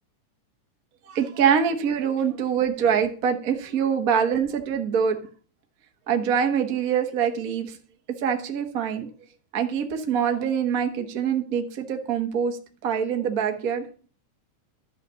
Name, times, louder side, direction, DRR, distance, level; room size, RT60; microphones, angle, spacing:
voice 1, 1.0-5.2 6.1-7.7 8.2-9.1 9.5-13.8, right 7 dB, 60° right, 4 dB, 0.9 m, -24 dB
12.5 x 5.8 x 6.9 m, 0.40 s
omnidirectional pair, 3.6 m